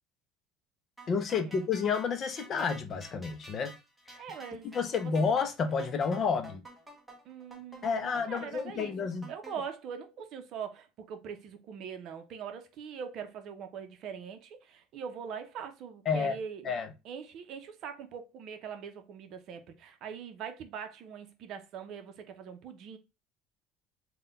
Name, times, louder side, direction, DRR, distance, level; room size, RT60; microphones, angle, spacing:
sound 1, 1.0-9.5, right 1 dB, 5° right, 0.8 m, -50 dB
voice 1, 1.1-3.8 4.1-4.2 4.6-6.6 7.8-9.3 16.1-16.3 16.6-16.9, left 5 dB, 35° left, 0.5 m, -30 dB
voice 2, 4.2-5.1 7.2-9.0 9.3-16.7 17.0-23.0, right 7 dB, 50° right, 0.6 m, -42 dB
3.8 x 2.2 x 3.8 m
cardioid pair, 145°, 0 cm